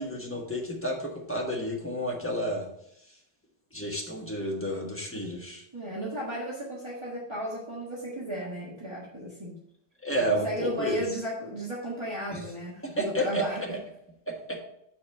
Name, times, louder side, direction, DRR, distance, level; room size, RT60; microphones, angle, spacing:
voice 1, 0.0-2.7 3.7-5.6 10.0-11.0 12.3-12.4 13.0-13.8 14.3-14.6, equal, 15° left, 0 dB, 1.2 m, -31 dB
voice 2, 5.7-9.6 10.2-13.8, equal, 25° right, -6 dB, 1.5 m, -34 dB
7.3 x 4.2 x 5.4 m, 0.75 s
omnidirectional pair, 1.1 m